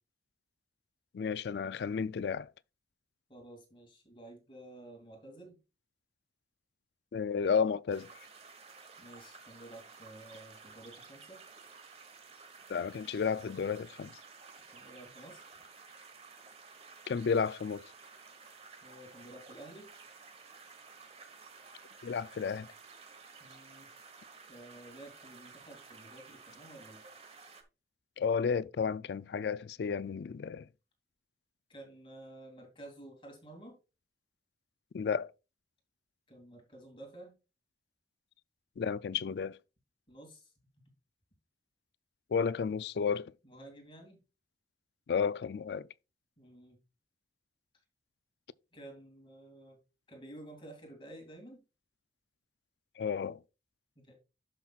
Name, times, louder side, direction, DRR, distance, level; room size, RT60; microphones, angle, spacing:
voice 1, 1.1-2.5 7.1-8.1 12.7-14.1 17.1-17.9 22.0-22.7 28.2-30.7 34.9-35.3 38.8-39.6 42.3-43.3 45.1-45.9 53.0-53.4, left 6 dB, 70° left, 0.3 m, -32 dB
voice 2, 3.3-5.6 9.0-11.4 14.7-15.4 18.8-19.9 23.4-23.9 24.5-27.0 31.7-33.8 36.3-37.3 40.1-40.5 43.4-44.2 46.4-46.8 48.7-49.8 50.1-51.6 54.0-54.1, right 1 dB, 30° left, 2.5 m, -51 dB
sound 1, 7.9-27.6, right 4 dB, 35° right, 1.2 m, -54 dB
11.0 x 5.9 x 2.4 m
head